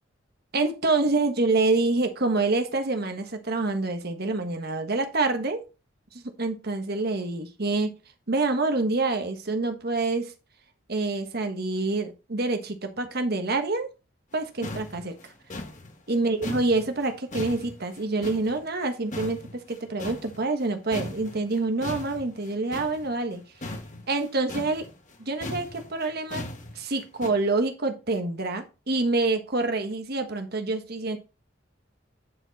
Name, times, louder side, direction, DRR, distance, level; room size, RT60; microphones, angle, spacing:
voice 1, 0.5-5.6 6.1-7.9 8.3-10.3 10.9-13.9 14.3-15.3 16.1-23.4 24.1-24.9 25.2-26.5 26.7-31.2, right 3 dB, 55° right, 6 dB, 1.4 m, -27 dB
sound 1, 14.3-14.4 14.6-18.9 19.1-20.7 20.9-27.3, left 1 dB, 40° left, 1.3 m, -38 dB
9.9 x 4.5 x 4.1 m, 0.29 s
head